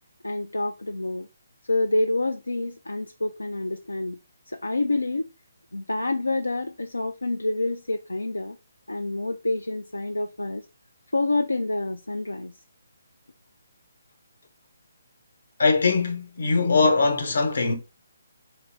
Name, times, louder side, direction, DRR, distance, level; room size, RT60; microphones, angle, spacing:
voice 1, 0.2-1.3 1.7-4.2 4.5-5.3 5.7-8.6 8.9-10.6 11.1-12.5, left 2 dB, 90° left, 0.3 m, -27 dB
voice 2, 15.6-17.8, left 4 dB, 65° left, 1.0 m, -21 dB
3.7 x 2.6 x 3.2 m
figure-of-eight pair, 145°, 0 cm